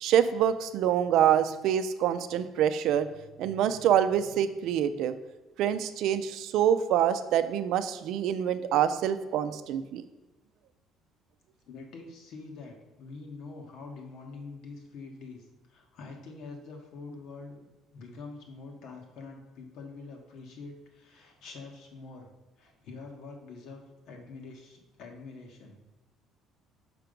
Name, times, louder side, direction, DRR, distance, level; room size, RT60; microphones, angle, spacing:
voice 1, 0.0-3.1 3.4-5.1 5.6-10.0, right 9 dB, 70° right, 11 dB, 0.4 m, -26 dB
voice 2, 11.7-22.3 22.6-25.8, left 3 dB, 70° left, 2 dB, 1.4 m, -45 dB
5.9 x 4.5 x 5.2 m, 1.1 s
cardioid pair, 130°, 0 cm